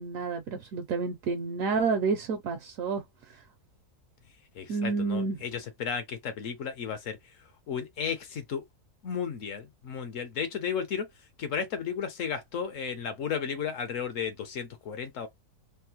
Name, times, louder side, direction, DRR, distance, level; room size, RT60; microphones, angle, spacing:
voice 1, 0.0-3.0 3.3-3.4 4.7-5.4, right 4 dB, 70° right, 1.0 m, -29 dB
voice 2, 4.5-8.6 9.0-11.1 11.4-15.3, left 7 dB, 65° left, 1.0 m, -34 dB
3.4 x 2.0 x 2.8 m
omnidirectional pair, 1.6 m